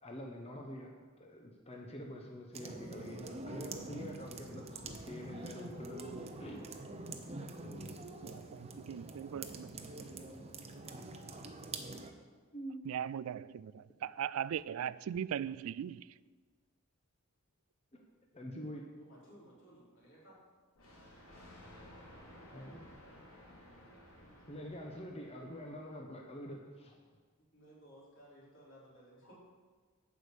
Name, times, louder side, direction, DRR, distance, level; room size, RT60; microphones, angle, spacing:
voice 1, 0.0-6.7 7.6-8.0 11.9-12.1 12.5-12.8 17.9-18.0 18.3-18.8 22.5-22.8 24.5-27.0, equal, 30° left, 1.0 m, -46 dB
sound 1, 2.5-12.1, right 2 dB, 30° right, 0.8 m, -46 dB
voice 2, 8.2-10.2 12.9-16.1, right 9 dB, 75° right, 0.3 m, -39 dB
voice 3, 19.0-20.4 24.2-24.3 27.5-29.3, equal, 60° left, 3.9 m, -58 dB
Thunder, 20.8-26.1, left 1 dB, 85° left, 3.2 m, -56 dB
11.0 x 5.1 x 8.2 m
head